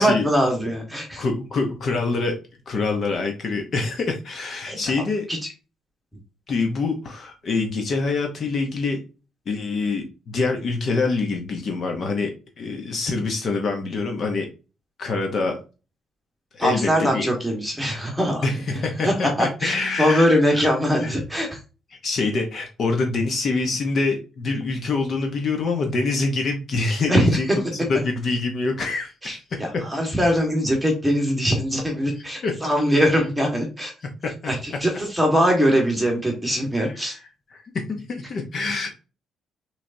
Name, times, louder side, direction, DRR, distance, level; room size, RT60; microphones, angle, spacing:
voice 1, 0.0-1.2 4.6-5.5 6.1-6.2 16.6-18.5 18.7-21.6 27.1-27.6 29.2-33.9 34.4-37.2, equal, 5° right, 1 dB, 1.4 m, -22 dB
voice 2, 1.2-2.4 2.7-5.3 6.5-9.0 9.5-12.3 12.6-14.5 15.0-15.6 16.5-17.3 18.4-20.2 20.5-20.6 21.0-21.1 22.0-27.5 27.9-29.4 32.4-32.5 37.5-37.6 37.9-38.9, left 3 dB, 40° left, 3 dB, 0.8 m, -25 dB
6.2 x 3.3 x 2.6 m, 0.32 s
cardioid pair, 180°, 0 cm